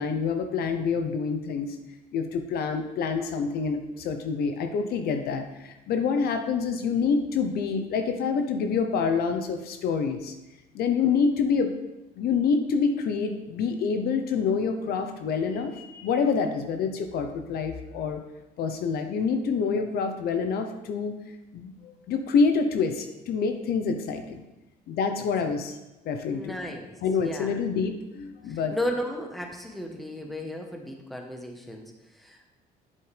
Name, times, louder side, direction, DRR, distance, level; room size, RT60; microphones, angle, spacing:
voice 1, 0.0-1.8 2.1-10.3 10.7-11.7 12.2-18.2 18.6-21.1 21.5-24.4 24.9-25.8 26.1-26.6 27.0-28.8, left 5 dB, 70° left, 6 dB, 0.8 m, -27 dB
voice 2, 26.3-27.0 27.2-27.6 28.5-32.5, left 1 dB, ahead, 2 dB, 1.1 m, -35 dB
7.8 x 7.5 x 3.4 m, 1.0 s
cardioid pair, 110°, 17 cm